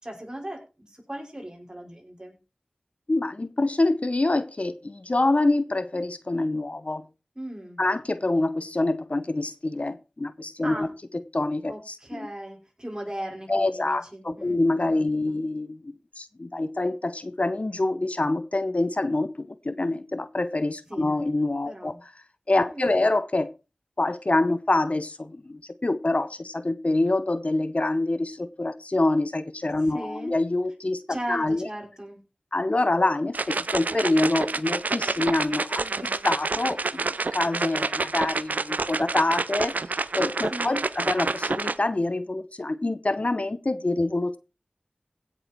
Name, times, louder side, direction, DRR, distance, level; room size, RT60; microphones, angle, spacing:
voice 1, 0.0-2.4 7.4-7.8 10.6-10.9 11.7-14.6 14.9-15.4 20.9-21.2 21.6-22.0 22.7-23.0 29.7-30.3 31.1-32.2 35.8-36.3 40.5-40.9, right 1 dB, 25° right, 5.6 m, -38 dB
voice 2, 3.1-7.1 7.8-10.9 11.3-12.3 13.5-21.9 22.5-23.5 24.0-31.0 31.3-31.7 32.5-35.8 36.2-44.4, left 2 dB, 55° left, 0.8 m, -26 dB
sound 1, 33.3-41.7, right 3 dB, 80° right, 0.5 m, -28 dB
16.0 x 7.1 x 4.5 m
wide cardioid pair, 45°, 3 cm